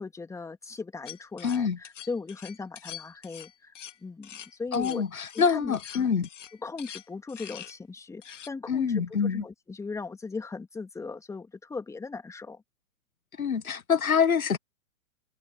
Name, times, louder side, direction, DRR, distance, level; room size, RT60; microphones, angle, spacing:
voice 1, 0.0-3.7 4.0-5.0 5.3-6.1 6.6-12.6, left 4 dB, 5° left, 2.6 m, -38 dB
sound 1, 1.1-7.8 8.2-8.5, left 10 dB, 60° left, 2.3 m, -45 dB
voice 2, 1.4-1.8 4.7-6.3 8.7-9.4 13.4-14.6, left 6 dB, 75° left, 1.4 m, -25 dB
figure-of-eight pair, 115°, 42 cm